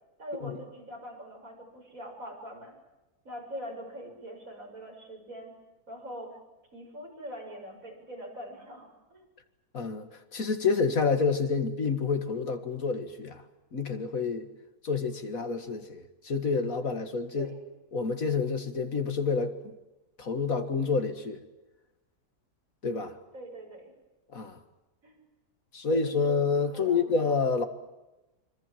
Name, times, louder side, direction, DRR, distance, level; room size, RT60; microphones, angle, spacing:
voice 1, 0.2-2.8 3.2-5.5 5.9-6.4 6.7-9.2 17.4-17.5 23.3-23.9 25.0-25.2 25.9-26.3 26.7-27.1, equal, 60° right, 0 dB, 7.4 m, -43 dB
voice 2, 9.7-13.4 13.7-14.5 14.8-17.5 17.9-19.7 20.2-21.4 22.8-23.2 24.3-24.6 25.7-27.7, left 4 dB, 60° left, 7 dB, 2.3 m, -28 dB
26.0 x 25.0 x 7.6 m, 1.0 s
omnidirectional pair, 1.6 m